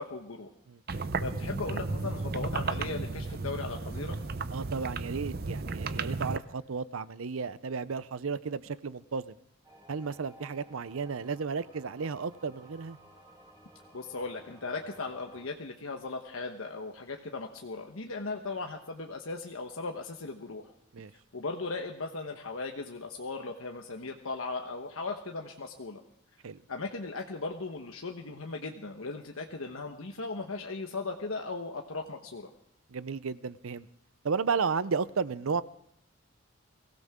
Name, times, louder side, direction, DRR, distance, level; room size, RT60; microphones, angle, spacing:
voice 1, 0.0-0.5 0.9-4.2 13.9-20.7 21.3-26.0 26.7-32.5, left 3 dB, 85° left, 3 dB, 1.2 m, -37 dB
sound 1, 0.9-6.4, right 3 dB, 45° right, 0.6 m, -34 dB
voice 2, 4.5-9.4 9.9-13.0 20.9-21.1 26.4-26.6 32.9-33.9 34.2-35.6, right 5 dB, 85° right, 16 dB, 0.6 m, -33 dB
sound 2, 9.6-15.5, right 1 dB, 20° right, 5.2 m, -55 dB
23.0 x 16.0 x 3.6 m, 0.76 s
head